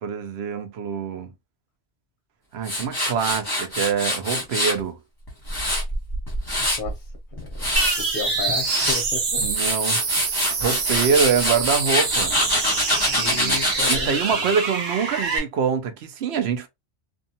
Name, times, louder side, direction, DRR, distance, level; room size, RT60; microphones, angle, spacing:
voice 1, 0.0-1.3 2.5-5.0 9.4-10.0 10.6-12.4 13.3-13.6 13.9-16.7, right 6 dB, 65° right, 0.8 m, -25 dB
Tools, 2.6-4.8 5.3-6.9 7.4-8.0 8.5-9.0 9.4-14.0, left 1 dB, 20° left, 1.1 m, -24 dB
sound 1, 7.8-15.4, right 4 dB, 85° right, 1.3 m, -26 dB
voice 2, 8.1-9.4 13.1-14.2, left 4 dB, 45° left, 0.8 m, -32 dB
2.5 x 2.4 x 2.7 m
omnidirectional pair, 1.3 m